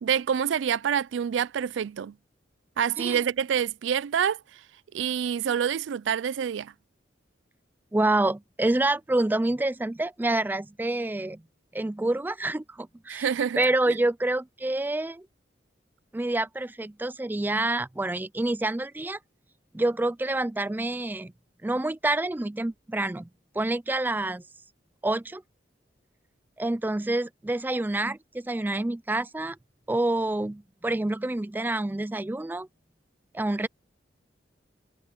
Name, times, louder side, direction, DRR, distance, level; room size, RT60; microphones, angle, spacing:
voice 1, 0.0-2.1 2.8-4.4 4.9-6.7 13.1-13.6, right 8 dB, 80° right, 0.4 m, -27 dB
voice 2, 7.9-11.4 11.7-13.3 13.6-15.3 16.1-19.2 19.7-21.3 21.6-23.3 23.5-24.4 25.0-25.4 26.6-29.6 29.9-32.7 33.3-33.7, right 2 dB, 10° right, 0.3 m, -27 dB
head